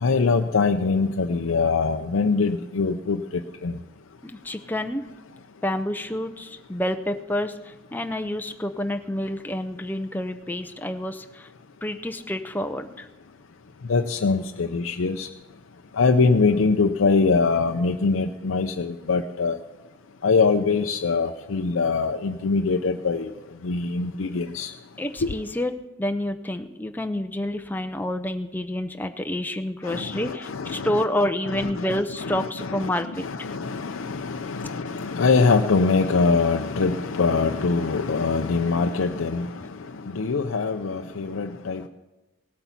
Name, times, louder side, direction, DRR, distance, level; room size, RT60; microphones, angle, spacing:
voice 1, 0.0-3.2 3.6-3.8 13.9-15.3 16.0-19.6 20.2-23.3 23.6-24.7 25.2-25.3 29.8-31.0 31.5-39.7 40.1-41.9, left 4 dB, 75° left, 4 dB, 0.5 m, -23 dB
voice 2, 4.2-5.1 5.6-11.5 11.8-13.1 25.0-25.7 26.0-33.3 39.6-39.7, left 1 dB, 10° left, 7 dB, 0.5 m, -28 dB
17.5 x 8.2 x 5.8 m, 1.1 s
head